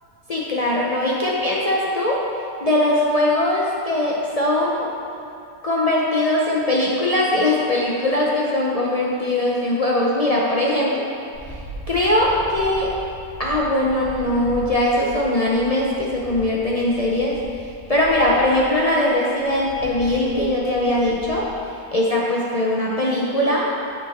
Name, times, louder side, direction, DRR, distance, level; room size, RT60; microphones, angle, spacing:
voice 1, 0.3-2.2 2.6-4.9 5.6-11.1 11.9-12.9 13.4-17.3 17.9-21.5 21.9-23.7, left 1 dB, 55° left, -4 dB, 0.4 m, -20 dB
sound 1, 11.3-21.5, right 1 dB, 35° left, 2.1 m, -39 dB
9.0 x 4.7 x 4.2 m, 2.5 s
omnidirectional pair, 1.6 m